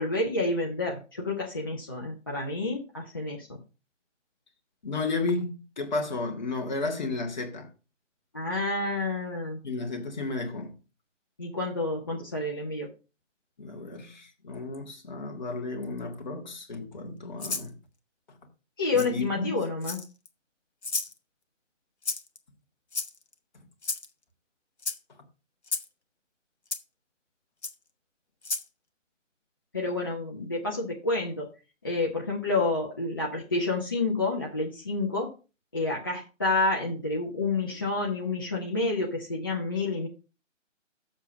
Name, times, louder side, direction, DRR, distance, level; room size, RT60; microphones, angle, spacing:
voice 1, 0.0-3.5 8.3-9.6 11.4-12.9 18.8-20.0 29.7-31.5 31.8-35.3 35.7-40.1, left 3 dB, 20° left, 0.7 m, -29 dB
voice 2, 4.8-7.7 9.6-10.7 13.6-17.7 18.9-19.5 23.5-23.6, left 3 dB, 35° left, 1.6 m, -33 dB
Rattle (instrument), 17.4-17.7 19.0-19.1 19.8-20.3 20.8-21.1 22.0-22.4 22.9-23.3 23.8-24.1 24.8-25.0 25.7-25.9 26.7-26.8 27.6-27.7 28.4-28.7, left 3 dB, 60° left, 1.1 m, -32 dB
7.3 x 6.6 x 5.3 m
figure-of-eight pair, 145°, 38 cm